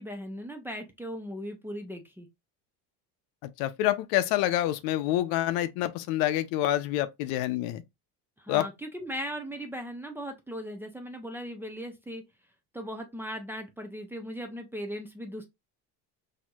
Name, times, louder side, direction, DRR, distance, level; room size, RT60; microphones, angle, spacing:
voice 1, 0.0-2.3 8.4-12.2 12.7-15.5, equal, 5° right, 0.5 m, -38 dB
voice 2, 3.4-7.8 8.5-8.7, left 13 dB, 75° left, 0.6 m, -27 dB
4.3 x 2.8 x 2.3 m
cardioid pair, 140°, 35 cm